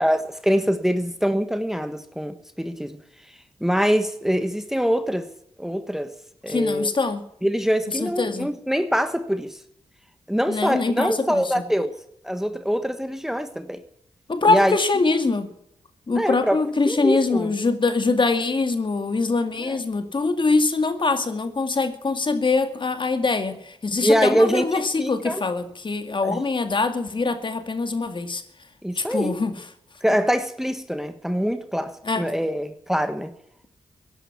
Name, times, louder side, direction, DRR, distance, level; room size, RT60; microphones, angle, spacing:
voice 1, 0.0-3.0 3.6-5.3 5.6-6.1 6.4-6.9 7.4-9.6 10.3-11.9 12.2-13.8 14.5-14.8 16.2-16.6 16.9-17.5 19.7-19.8 24.0-25.4 26.2-26.4 28.8-29.4 30.0-33.3, equal, 5° right, 1.3 m, -24 dB
voice 2, 6.5-7.3 8.0-8.5 10.5-11.6 14.3-15.5 16.1-28.4 29.0-29.6 32.0-32.2, left 3 dB, 45° left, 2.1 m, -23 dB
16.0 x 10.5 x 7.2 m
cardioid pair, 60°, 12 cm